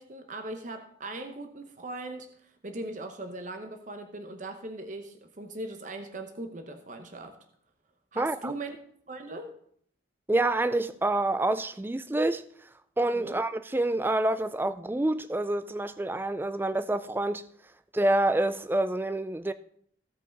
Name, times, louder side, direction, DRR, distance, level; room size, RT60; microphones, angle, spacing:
voice 1, 0.0-7.4 8.1-8.8 9.1-9.5 13.1-13.4, right 2 dB, 40° right, 0.8 m, -39 dB
voice 2, 8.2-8.5 10.3-12.4 13.0-17.5 17.9-19.5, right 2 dB, 10° right, 0.3 m, -27 dB
16.0 x 5.4 x 3.9 m
head